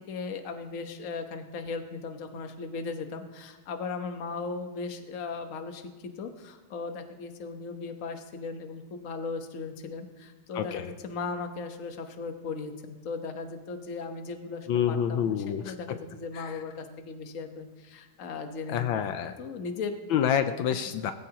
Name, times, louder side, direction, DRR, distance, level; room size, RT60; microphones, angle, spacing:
voice 1, 0.1-19.9, left 4 dB, 45° left, 6 dB, 1.3 m, -37 dB
voice 2, 10.5-10.9 14.7-15.7 16.3-16.6 18.7-19.4 20.1-21.1, left 9 dB, 80° left, 9 dB, 1.5 m, -28 dB
19.5 x 15.5 x 2.9 m, 1.2 s
omnidirectional pair, 2.2 m